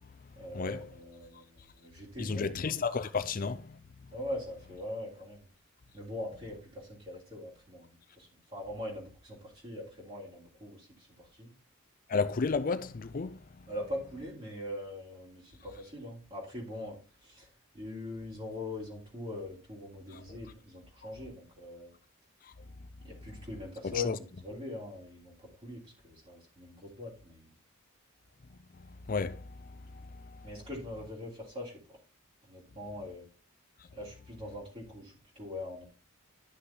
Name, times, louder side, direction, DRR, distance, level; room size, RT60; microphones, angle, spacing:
voice 1, 0.3-2.5 4.1-5.4 5.9-11.5 13.7-17.5 17.7-21.9 23.0-27.5 30.4-31.8 32.5-33.3 33.9-35.9, left 1 dB, 30° right, 3.4 m, -42 dB
voice 2, 2.2-3.8 12.1-13.4 20.1-20.2 23.8-24.2 29.1-29.8 30.1-30.5, left 4 dB, 40° left, 0.4 m, -32 dB
11.5 x 6.3 x 2.9 m
head